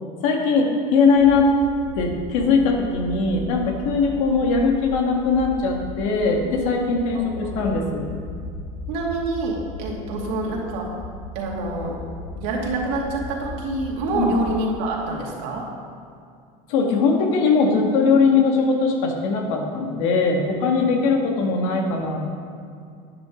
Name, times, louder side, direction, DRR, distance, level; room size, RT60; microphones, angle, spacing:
voice 1, 0.2-1.5 2.0-8.1 14.2-14.4 16.7-22.2, left 4 dB, 85° left, 1 dB, 2.0 m, -20 dB
sound 1, 1.1-14.7, left 1 dB, 5° left, 1.2 m, -37 dB
voice 2, 7.1-7.6 8.9-10.9 11.3-12.0 12.4-15.7, right 2 dB, 75° right, -2 dB, 2.5 m, -27 dB
11.0 x 9.9 x 3.9 m, 2.3 s
cardioid pair, 140°, 16 cm